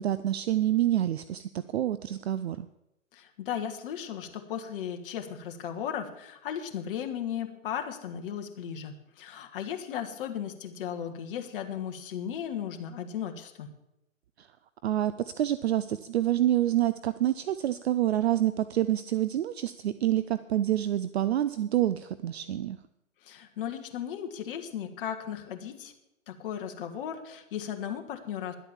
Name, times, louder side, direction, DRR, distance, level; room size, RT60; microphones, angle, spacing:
voice 1, 0.0-2.7 14.4-14.5 14.8-22.8, right 12 dB, 55° right, 14 dB, 0.5 m, -27 dB
voice 2, 3.1-13.7 23.2-25.9 26.3-28.5, left 9 dB, 40° left, 5 dB, 1.5 m, -36 dB
11.5 x 8.2 x 7.2 m, 0.85 s
hypercardioid pair, 140°, 40 cm